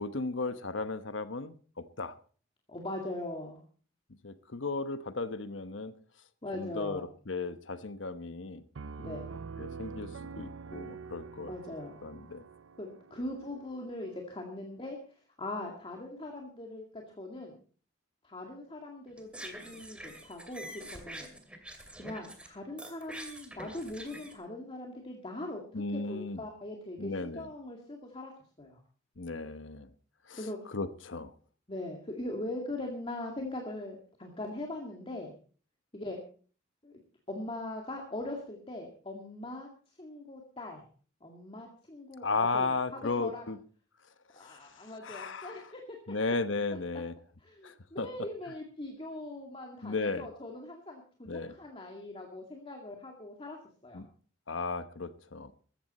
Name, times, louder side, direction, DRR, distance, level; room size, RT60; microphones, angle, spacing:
voice 1, 0.0-2.1 4.2-5.9 6.5-8.7 9.6-11.5 12.0-12.4 25.7-26.4 27.0-27.5 29.2-29.9 30.3-30.4 30.7-31.3 42.2-43.6 44.4-45.6 46.1-47.1 47.6-48.3 49.8-50.3 51.3-51.5 53.9-54.1 54.5-55.5, left 3 dB, 70° left, 1.1 m, -35 dB
voice 2, 2.7-3.6 6.4-7.1 9.0-9.3 11.5-12.0 12.8-15.0 15.4-17.6 18.2-20.6 20.9-21.3 22.0-25.6 25.9-28.3 28.6-28.8 30.4-30.6 31.7-35.3 35.9-36.2 36.8-37.0 37.3-39.7 40.0-40.8 41.2-42.7 43.2-43.5 44.3-46.0 47.4-54.0, left 1 dB, 30° left, 2.1 m, -41 dB
Piano, 8.8-14.3, right 5 dB, 85° right, 0.6 m, -45 dB
sound 1, 19.1-22.5 22.8-24.3, right 1 dB, 5° right, 2.4 m, -45 dB
14.5 x 14.5 x 4.2 m
head